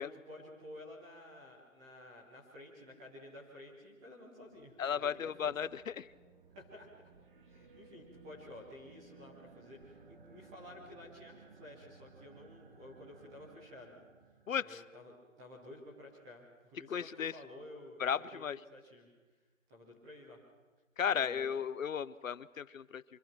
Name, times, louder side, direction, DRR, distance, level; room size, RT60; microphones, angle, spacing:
voice 1, 0.0-5.1 5.4-5.5 6.5-6.9 7.5-14.0 14.6-18.4 18.7-19.1 19.7-20.4 21.1-21.5, left 1 dB, 5° right, -4 dB, 0.7 m, -52 dB
sound 1, 4.4-14.9, right 4 dB, 40° right, 2.5 m, -59 dB
voice 2, 4.8-6.1 14.5-14.8 16.9-17.4 18.0-18.6 21.0-23.0, left 7 dB, 80° left, 18 dB, 0.9 m, -35 dB
25.0 x 23.5 x 6.0 m, 1.3 s
hypercardioid pair, 165°, 39 cm